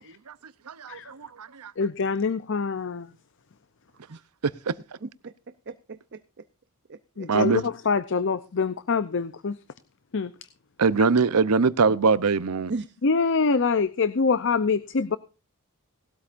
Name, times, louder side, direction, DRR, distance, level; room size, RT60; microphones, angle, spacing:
voice 1, 0.7-1.7 4.4-4.7 7.3-7.6 10.8-12.7, right 4 dB, 85° right, 0.7 m, -22 dB
voice 2, 1.8-3.1 7.2-9.6 10.1-10.3 13.0-15.2, left 4 dB, 55° left, 0.6 m, -25 dB
voice 3, 5.0-6.5 6.9-7.3 12.7-13.0, right 3 dB, 50° right, 0.6 m, -38 dB
19.0 x 13.0 x 2.6 m
head